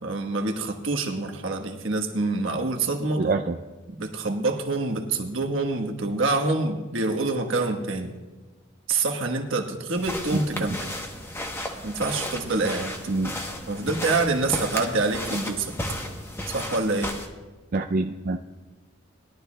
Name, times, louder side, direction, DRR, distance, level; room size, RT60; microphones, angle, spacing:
voice 1, 0.0-3.3 3.9-8.1 8.9-11.0 11.8-12.9 13.7-15.7 16.5-17.1, right 3 dB, 70° right, 4 dB, 1.3 m, -26 dB
voice 2, 3.2-3.5 10.6-10.7 13.1-13.3 17.7-18.4, right 3 dB, 45° right, 5 dB, 0.4 m, -25 dB
sound 1, 10.0-17.3, left 1 dB, 10° left, 0.9 m, -34 dB
20.5 x 12.0 x 2.2 m, 1.3 s
head